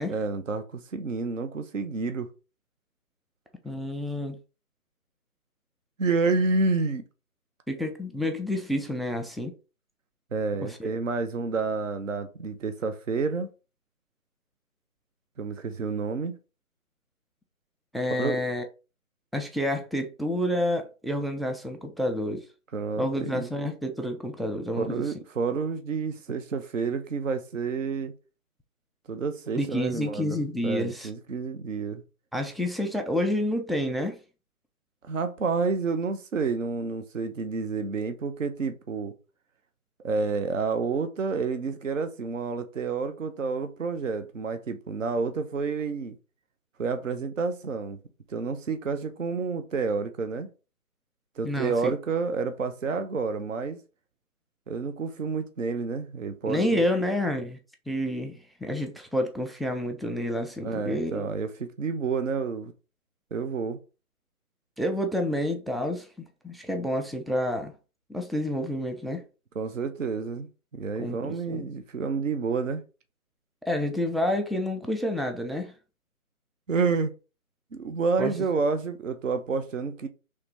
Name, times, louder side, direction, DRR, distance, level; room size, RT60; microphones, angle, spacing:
voice 1, 0.1-2.3 6.0-7.0 10.3-13.5 15.4-16.4 18.2-18.4 22.7-23.5 24.8-28.1 29.1-32.0 35.0-39.1 40.0-46.2 46.8-48.0 48.3-50.5 51.4-53.8 54.7-56.8 60.6-62.7 63.3-63.8 69.6-72.8 76.7-77.1 77.7-80.1, right 4 dB, 60° right, 0.6 m, -29 dB
voice 2, 3.6-4.4 7.7-9.5 10.6-10.9 17.9-18.6 19.3-22.5 23.0-25.1 29.6-31.1 32.3-34.2 51.4-51.9 56.5-57.6 57.9-61.3 64.8-66.1 66.4-67.7 68.1-69.2 71.0-71.7 73.7-75.7 78.2-78.3, left 1 dB, ahead, 0.3 m, -29 dB
3.1 x 2.8 x 3.4 m
figure-of-eight pair, 170°, 44 cm